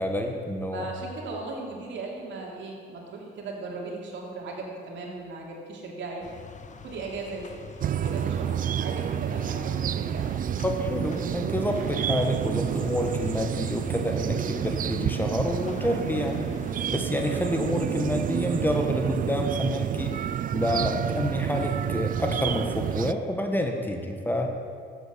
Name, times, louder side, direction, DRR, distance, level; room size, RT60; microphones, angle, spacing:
voice 1, 0.0-0.9 10.6-16.5 16.9-20.2 20.5-24.5, left 1 dB, 10° left, 3 dB, 1.3 m, -28 dB
voice 2, 0.7-6.2 6.8-7.6 7.9-10.3, right 3 dB, 70° right, -1 dB, 2.8 m, -37 dB
sound 1, 6.2-17.0, left 5 dB, 40° left, 1.0 m, -45 dB
sound 2, 7.8-23.1, right 9 dB, 45° right, 0.4 m, -29 dB
12.5 x 8.3 x 6.8 m, 2.2 s
cardioid pair, 90°, 20 cm